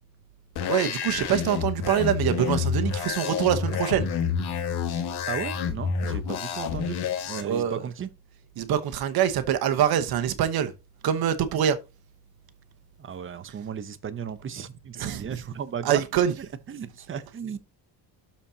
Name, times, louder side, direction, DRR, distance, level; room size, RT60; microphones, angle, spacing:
sound 1, 0.6-7.4, left 7 dB, 75° left, 1.6 m, -29 dB
voice 1, 0.7-4.1 7.4-7.8 8.6-10.7 11.0-11.8 15.0-15.3 15.8-16.3, right 9 dB, 65° right, 1.1 m, -24 dB
voice 2, 5.3-7.0 7.3-8.1 13.0-16.1 16.4-17.6, right 7 dB, 30° right, 0.8 m, -35 dB
12.5 x 4.4 x 2.8 m
cardioid pair, 130°, 39 cm